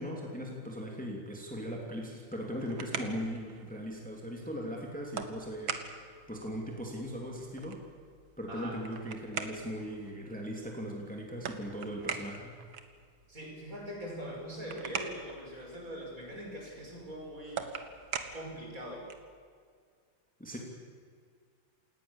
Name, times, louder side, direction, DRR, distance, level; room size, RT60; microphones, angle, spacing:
voice 1, 0.0-7.8 8.4-12.5 20.4-20.6, equal, 5° left, 0 dB, 2.9 m, -39 dB
sound 1, 2.3-19.4, right 6 dB, 85° right, 2.3 m, -44 dB
voice 2, 8.5-8.8 13.3-17.7 18.3-19.1, equal, 45° right, -1 dB, 6.3 m, -42 dB
28.0 x 18.5 x 7.3 m, 2.1 s
omnidirectional pair, 2.1 m